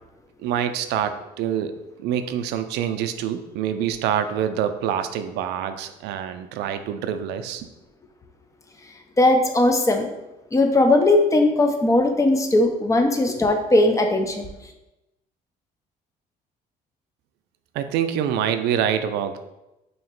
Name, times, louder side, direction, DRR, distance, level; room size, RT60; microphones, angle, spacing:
voice 1, 0.4-7.7 17.7-19.4, right 9 dB, 80° right, 9 dB, 0.4 m, -26 dB
voice 2, 9.2-10.1 10.5-14.4, left 2 dB, 20° left, 5 dB, 0.5 m, -18 dB
3.0 x 2.8 x 4.4 m, 0.97 s
cardioid pair, 110°, 17 cm